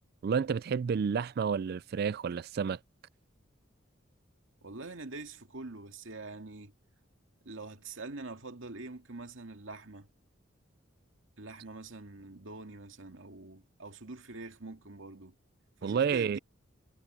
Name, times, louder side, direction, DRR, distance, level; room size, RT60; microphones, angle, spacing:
voice 1, 0.2-2.8 15.8-16.4, right 6 dB, 50° right, 0.3 m, -30 dB
voice 2, 4.6-6.7 7.4-10.1 11.4-15.4 15.8-16.4, right 3 dB, 80° right, 2.1 m, -45 dB
head